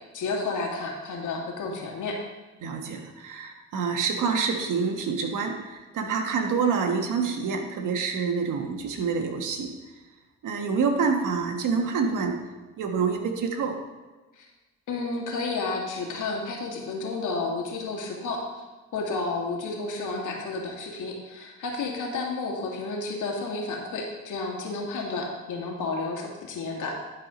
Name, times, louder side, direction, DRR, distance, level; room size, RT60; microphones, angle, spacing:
voice 1, 0.1-2.2 14.4-14.5 14.9-18.6 18.9-27.0, left 3 dB, 70° left, 0 dB, 2.1 m, -31 dB
voice 2, 2.6-9.7 10.4-12.4 12.8-13.8, right 5 dB, 75° right, 4 dB, 1.4 m, -27 dB
11.5 x 4.8 x 5.1 m, 1.2 s
supercardioid pair, 70°, 31 cm